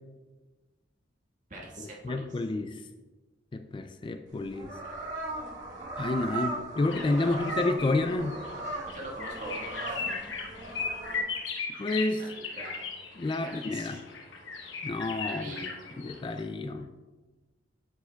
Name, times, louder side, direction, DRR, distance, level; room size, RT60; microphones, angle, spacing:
voice 1, 1.5-2.4 7.2-7.4 8.9-10.3 12.2-12.9 13.4-14.0 15.2-15.8, right 2 dB, 40° right, -2 dB, 1.5 m, -43 dB
voice 2, 2.0-2.8 3.5-4.7 6.0-8.4 11.8-12.2 13.2-14.0 14.8-15.5 16.0-16.9, left 2 dB, 25° left, 8 dB, 0.3 m, -29 dB
sound 1, 4.3-11.2, right 2 dB, 70° right, 2.4 m, -38 dB
sound 2, 6.9-16.4, left 4 dB, 80° left, 1.0 m, -38 dB
8.8 x 6.7 x 2.3 m, 1.2 s
head